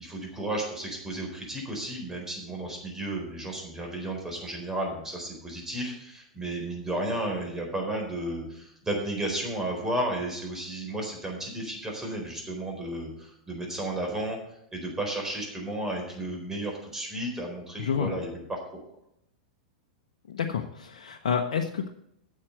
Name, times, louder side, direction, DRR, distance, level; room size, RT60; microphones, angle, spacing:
voice 1, 0.0-14.4 14.7-18.6, right 1 dB, 10° right, 1 dB, 4.2 m, -33 dB
voice 2, 17.8-18.1 20.3-21.9, left 7 dB, 70° left, 3 dB, 0.9 m, -29 dB
8.7 x 7.5 x 7.8 m, 0.75 s
hypercardioid pair, 100°, 4 cm